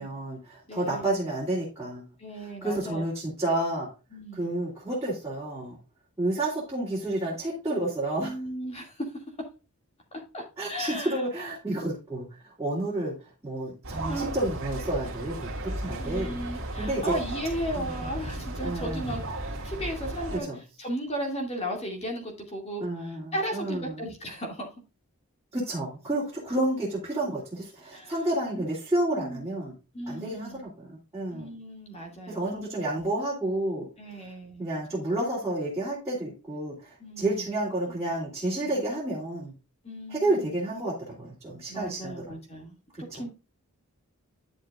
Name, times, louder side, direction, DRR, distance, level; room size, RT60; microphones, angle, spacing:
voice 1, 0.0-2.0 2.4-3.9 4.3-5.8 6.2-8.3 10.6-16.4 16.8-17.1 17.7-18.1 18.6-19.2 20.3-20.6 22.8-24.0 25.5-29.7 30.1-31.5 32.3-33.9 34.6-39.5 40.1-42.1, right 1 dB, 15° right, -9 dB, 2.9 m, -30 dB
voice 2, 0.7-1.1 2.2-3.0 4.1-4.5 8.2-9.1 10.3-11.2 14.0-14.4 16.0-19.2 19.6-20.5 20.8-24.7 27.9-28.1 28.5-28.6 29.1-29.5 29.9-30.7 31.3-32.7 33.0-33.1 34.0-34.8 37.0-37.5 38.6-38.8 39.8-40.5 41.7-43.3, equal, 30° left, 1 dB, 2.4 m, -35 dB
sound 1, 13.8-20.4, right 1 dB, 65° right, 2.2 m, -35 dB
11.0 x 6.6 x 2.5 m, 0.31 s
head